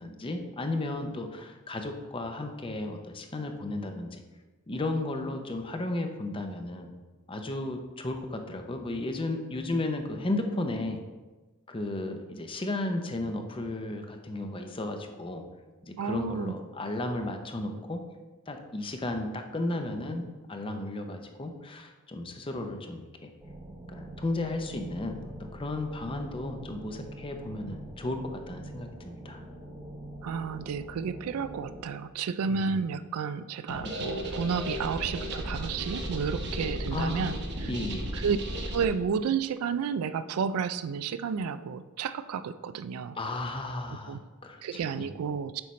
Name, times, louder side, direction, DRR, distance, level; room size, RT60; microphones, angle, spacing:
voice 1, 0.0-4.2 4.7-6.9 7.3-11.0 11.7-15.4 15.8-18.0 18.5-20.2 20.5-23.3 23.9-29.4 32.5-32.7 33.8-33.9 36.9-37.3 37.7-38.1 43.2-45.1, left 2 dB, 25° left, 5 dB, 0.6 m, -34 dB
voice 2, 16.0-16.5 30.2-37.7 38.1-38.4 38.7-43.2 44.1-44.2 44.6-45.6, right 6 dB, 85° right, 14 dB, 0.3 m, -31 dB
sound 1, 23.4-31.9, right 1 dB, 10° right, 1.1 m, -44 dB
sound 2, 33.7-38.9, right 1 dB, 50° right, 1.1 m, -35 dB
7.8 x 5.7 x 3.1 m, 1.2 s
head